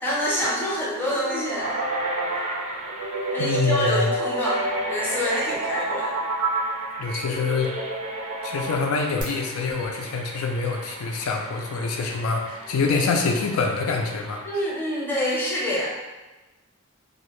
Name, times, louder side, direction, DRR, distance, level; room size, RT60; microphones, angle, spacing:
voice 1, 0.0-1.8 3.3-6.1 14.4-15.9, left 1 dB, 10° left, -5 dB, 0.6 m, -26 dB
sound 1, 0.7-9.2, right 2 dB, 85° right, 0.8 m, -29 dB
sound 2, 1.5-14.4, right 1 dB, 35° right, 0.4 m, -37 dB
voice 2, 3.4-4.1 7.0-7.8 8.4-14.4, left 4 dB, 80° left, 2 dB, 0.4 m, -25 dB
2.5 x 2.1 x 3.0 m, 1.1 s
head